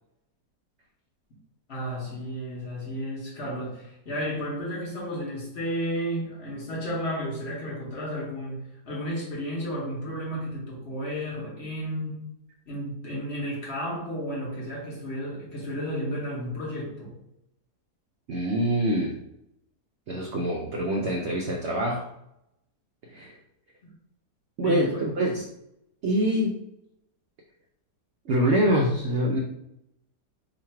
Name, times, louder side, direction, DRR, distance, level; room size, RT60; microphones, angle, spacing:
voice 1, 1.7-12.3 12.7-17.2 23.8-23.9 24.6-25.1, equal, 45° left, -4 dB, 1.2 m, -33 dB
voice 2, 18.3-19.2 20.1-22.1 23.1-23.4 24.6-25.4 26.0-26.6 28.3-29.4, equal, 75° right, 1 dB, 0.6 m, -25 dB
3.1 x 2.5 x 4.3 m, 0.81 s
omnidirectional pair, 1.8 m